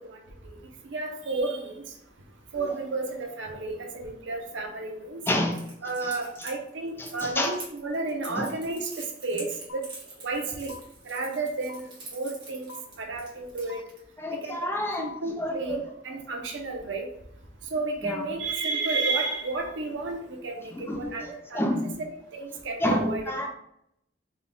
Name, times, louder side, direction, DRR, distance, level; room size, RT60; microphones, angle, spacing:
voice 1, 0.8-1.8 2.5-5.2 5.8-9.8 10.2-10.7 11.1-12.7 13.0-13.8 14.4-14.6 15.0-17.1 17.7-21.8 22.3-23.2, right 3 dB, 90° right, 3 dB, 0.7 m, -32 dB
voice 2, 5.3-5.6 6.0-6.2 7.0-7.5 8.4-8.5 14.2-15.1 15.4-15.8 18.0-18.3 20.7-22.0 22.8-23.5, left 1 dB, 10° left, 2 dB, 0.4 m, -29 dB
Crackle, 5.5-14.0, right 3 dB, 25° right, 1.2 m, -44 dB
sound 1, 9.7-9.8 10.7-10.8 11.7-11.8 12.7-12.8 13.7-13.8 14.7-15.2, left 5 dB, 85° left, 0.3 m, -43 dB
3.7 x 2.2 x 3.5 m, 0.76 s
head